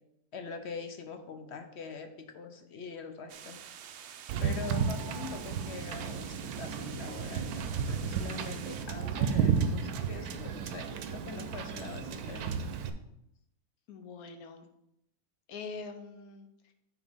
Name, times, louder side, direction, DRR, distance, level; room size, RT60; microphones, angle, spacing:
voice 1, 0.3-3.6 4.4-12.6, left 5 dB, 60° left, 7 dB, 0.8 m, -44 dB
sound 1, 3.3-8.9, right 8 dB, 65° right, 0.7 m, -48 dB
Wind / Boat Water vehicle, 4.3-12.9, right 7 dB, 90° right, 1.1 m, -33 dB
voice 2, 4.6-4.9 13.9-14.7 15.5-16.7, left 4 dB, 80° left, 6 dB, 1.2 m, -44 dB
9.0 x 3.8 x 3.5 m, 0.81 s
omnidirectional pair, 1.5 m